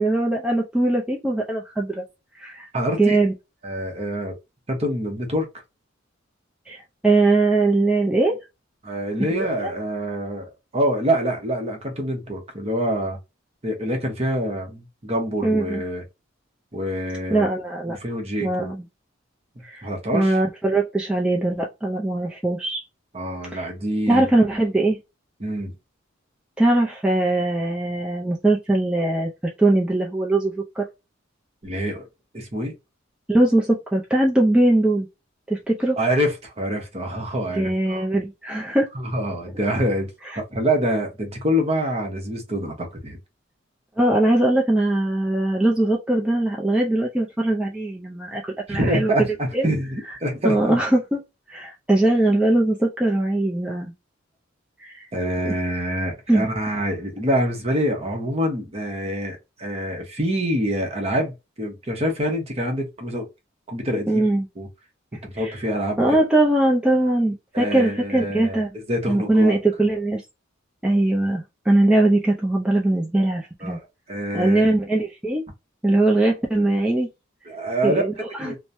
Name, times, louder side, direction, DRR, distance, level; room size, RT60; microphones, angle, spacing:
voice 1, 0.0-2.0 2.4-2.7 3.0-3.3 6.7-8.4 9.6-9.7 15.4-15.8 17.3-18.0 18.4-18.9 19.6-19.8 20.1-22.8 23.5-23.7 24.1-25.0 26.6-29.3 29.6-30.8 33.3-35.1 35.5-36.0 37.5-38.9 44.0-48.4 48.7-49.1 49.5-49.7 50.4-51.2 51.5-53.9 54.8-55.1 55.4-55.5 56.3-56.5 64.1-64.5 65.4-65.5 66.0-68.7 69.1-70.2 70.8-73.8 74.3-75.4 75.8-77.1 77.8-78.6, right 2 dB, 5° right, 0.4 m, -21 dB
voice 2, 2.7-3.2 3.6-4.3 4.7-5.5 8.8-13.2 13.6-16.0 16.7-17.5 17.9-18.7 19.6-20.4 23.1-24.3 25.4-25.7 31.6-32.1 32.3-32.7 36.0-38.0 38.9-40.1 40.4-43.2 48.7-50.8 55.1-61.3 61.6-63.3 63.7-64.2 64.6-64.7 65.2-66.1 67.5-69.6 73.6-73.8 74.1-74.7 77.5-78.0 78.4-78.6, equal, 30° right, 0.9 m, -26 dB
3.1 x 2.1 x 2.6 m
head